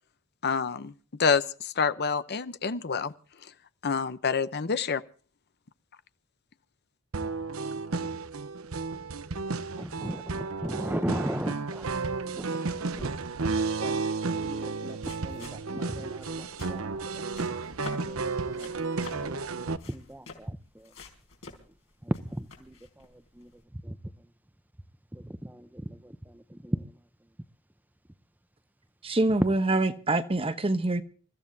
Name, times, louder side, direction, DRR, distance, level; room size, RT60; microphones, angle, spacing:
voice 1, 0.4-0.9 1.2-3.1 3.8-5.0, left 5 dB, 50° left, 0.8 m, -27 dB
sound 1, 7.1-19.8, right 4 dB, 90° right, 0.9 m, -32 dB
voice 2, 9.8-11.9 12.4-12.5 13.0-13.1 13.8-13.9 14.3-16.9 17.2-17.3 17.9-18.7 19.1-20.6 22.1-22.7 23.4-23.5 23.8-24.0 25.1-26.8, right 1 dB, 10° right, 0.7 m, -36 dB
sound 2, 12.8-23.6, left 3 dB, 75° left, 4.4 m, -50 dB
voice 3, 29.0-31.0, right 2 dB, 25° right, 1.0 m, -25 dB
28.0 x 14.5 x 2.7 m
head